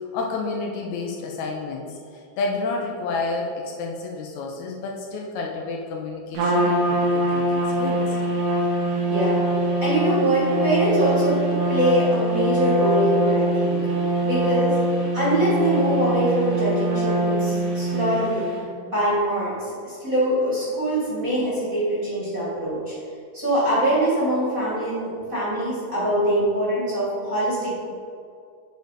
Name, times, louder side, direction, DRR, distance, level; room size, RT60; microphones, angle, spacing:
voice 1, 0.1-8.2, left 3 dB, 75° left, 0 dB, 1.9 m, -30 dB
Trumpet, 6.3-18.5, right 1 dB, 75° right, 2.6 m, -23 dB
voice 2, 9.1-9.5 9.8-11.4 11.7-13.8 14.2-14.8 15.1-22.9 23.3-27.7, right 1 dB, 30° right, -8 dB, 1.8 m, -23 dB
8.0 x 4.4 x 4.8 m, 2.4 s
omnidirectional pair, 3.6 m